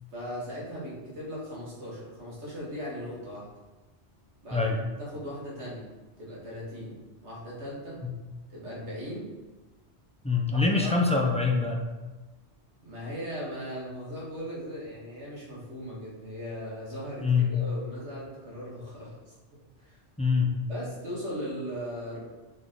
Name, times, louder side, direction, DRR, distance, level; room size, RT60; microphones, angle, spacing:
voice 1, 0.1-3.5 4.4-4.7 5.0-5.8 6.2-6.9 7.2-8.0 8.5-9.3 10.5-11.0 12.8-20.0 20.7-22.3, equal, 75° right, -6 dB, 2.1 m, -38 dB
voice 2, 10.2-11.8 17.2-17.5 20.2-20.5, left 4 dB, 10° left, -1 dB, 0.5 m, -24 dB
6.0 x 4.2 x 3.8 m, 1.2 s
omnidirectional pair, 1.2 m